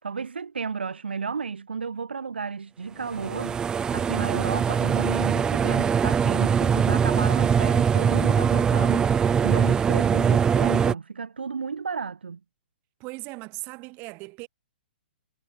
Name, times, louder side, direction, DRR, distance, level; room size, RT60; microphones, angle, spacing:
voice 1, 0.0-3.6 3.9-9.2 9.4-12.4, right 5 dB, 85° right, 2.6 m, -32 dB
sound 1, 3.1-10.9, right 7 dB, 15° right, 1.0 m, -22 dB
voice 2, 13.0-14.5, right 27 dB, 35° right, 5.9 m, -38 dB
hypercardioid pair, 135°, 6 cm